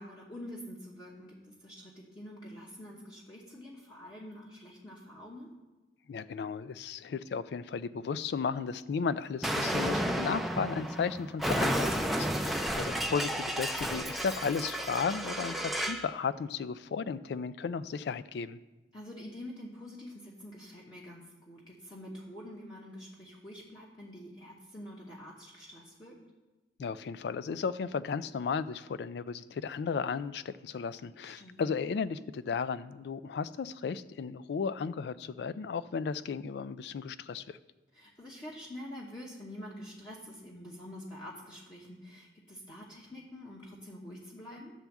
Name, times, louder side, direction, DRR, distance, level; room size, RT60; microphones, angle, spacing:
voice 1, 0.0-5.5 12.5-12.8 18.9-26.2 31.2-31.6 37.9-44.7, left 1 dB, 25° left, -5 dB, 0.9 m, -46 dB
voice 2, 6.1-18.6 26.8-37.6, left 5 dB, 65° left, 15 dB, 0.3 m, -34 dB
Explosion, 9.4-16.1, equal, ahead, 0.4 m, -32 dB
10.0 x 3.5 x 7.1 m, 1.1 s
head